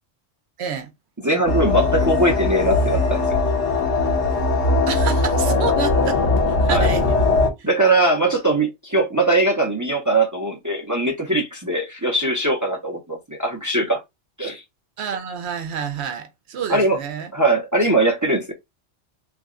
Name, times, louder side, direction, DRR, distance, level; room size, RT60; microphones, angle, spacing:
voice 1, 0.6-0.9 4.9-6.2 6.6-7.1 15.0-17.3, right 7 dB, 65° right, 0.9 m, -28 dB
voice 2, 1.2-3.4 6.7-6.9 7.6-14.0 14.4-14.6 16.7-17.0 17.3-18.5, right 2 dB, 25° right, 0.5 m, -21 dB
sound 1, 1.5-7.5, left 3 dB, 65° left, 1.2 m, -20 dB
3.3 x 2.1 x 3.6 m
omnidirectional pair, 1.3 m